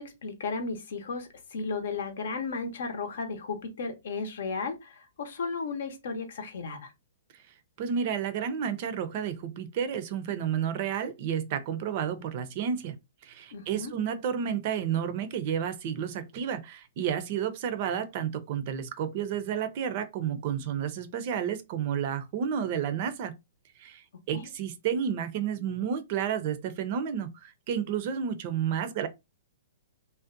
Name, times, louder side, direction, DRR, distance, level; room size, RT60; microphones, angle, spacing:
voice 1, 0.0-6.9 13.5-13.9 24.3-24.5, left 4 dB, 70° left, 0.7 m, -34 dB
voice 2, 7.8-12.9 13.2-23.3 23.8-29.1, right 8 dB, 50° right, 0.4 m, -31 dB
2.5 x 2.1 x 2.5 m
hypercardioid pair, 135°, 0 cm